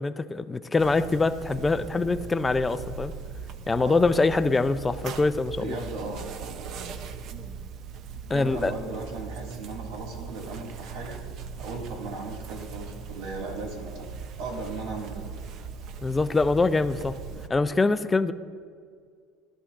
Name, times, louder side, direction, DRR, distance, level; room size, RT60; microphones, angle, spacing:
voice 1, 0.0-3.1 3.7-5.8 8.3-8.7 16.0-17.2 17.5-18.3, left 3 dB, 15° left, 12 dB, 0.4 m, -24 dB
sound 1, 0.8-17.5, right 6 dB, 45° right, 0.6 m, -39 dB
voice 2, 5.6-6.3 8.3-11.2 11.6-15.3, right 3 dB, 75° right, 0 dB, 2.1 m, -37 dB
17.5 x 12.5 x 2.5 m, 2.1 s
cardioid pair, 145°, 0 cm